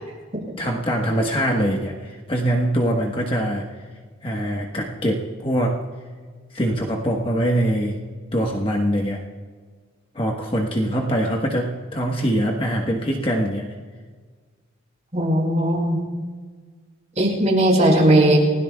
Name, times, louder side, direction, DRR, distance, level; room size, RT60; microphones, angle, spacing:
voice 1, 0.6-3.6 4.2-5.8 6.5-7.9 8.3-9.2 10.1-13.7, equal, 25° left, 0 dB, 1.2 m, -23 dB
voice 2, 15.1-16.0 17.2-18.4, right 1 dB, 35° right, -2 dB, 5.2 m, -17 dB
29.0 x 16.5 x 2.3 m, 1.5 s
head